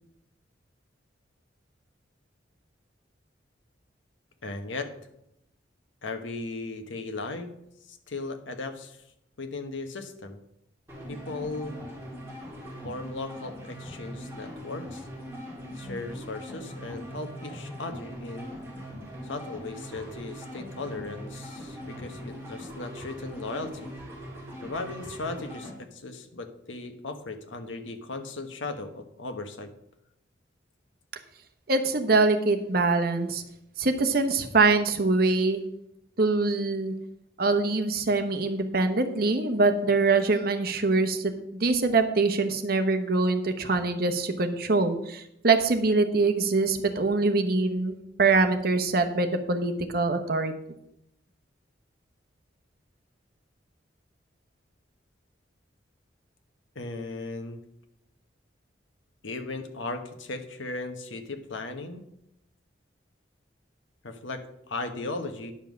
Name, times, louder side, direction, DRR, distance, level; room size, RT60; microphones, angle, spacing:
voice 1, 4.4-4.9 6.0-7.5 7.9-9.0 9.4-10.4 11.1-11.8 12.8-15.1 15.7-18.5 19.3-23.9 24.6-29.7 56.7-57.6 59.2-62.0 64.0-65.5, left 3 dB, 85° left, 7 dB, 1.1 m, -37 dB
sound 1, 10.9-25.8, equal, 15° right, 2.7 m, -41 dB
voice 2, 31.7-33.4 33.8-35.6 36.2-36.9 37.4-50.5, right 3 dB, 50° right, 7 dB, 0.9 m, -24 dB
10.0 x 5.4 x 6.2 m, 0.81 s
head